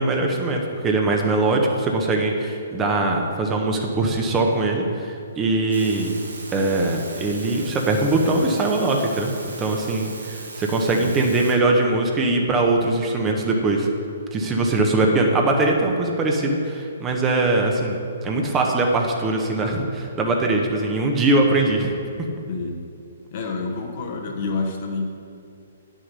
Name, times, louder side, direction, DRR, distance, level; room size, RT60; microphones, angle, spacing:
voice 1, 0.0-6.1 6.5-13.9 14.3-18.0 18.2-22.3, right 2 dB, 20° right, 1 dB, 1.2 m, -21 dB
sound 1, 5.7-11.5, right 2 dB, 80° right, 1.5 m, -38 dB
voice 2, 22.5-22.8 23.3-25.1, left 3 dB, 45° left, 2 dB, 1.3 m, -28 dB
9.7 x 6.5 x 5.5 m, 2.4 s
figure-of-eight pair, 125°, 0 cm